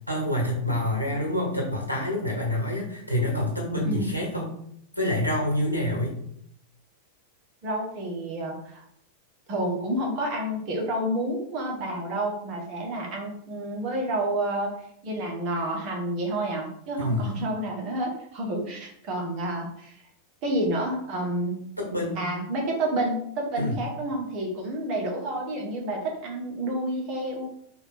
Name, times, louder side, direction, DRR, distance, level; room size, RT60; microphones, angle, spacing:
voice 1, 0.1-4.5 4.9-6.2 17.0-17.3 21.8-22.2 23.6-23.8, left 1 dB, 90° left, 0 dB, 1.5 m, -27 dB
voice 2, 3.8-4.2 7.6-8.8 9.5-14.7 15.0-20.0 20.4-21.6 22.2-27.5, right 1 dB, 40° right, 0 dB, 1.5 m, -29 dB
4.1 x 2.8 x 4.4 m, 0.70 s
figure-of-eight pair, 90°, 0 cm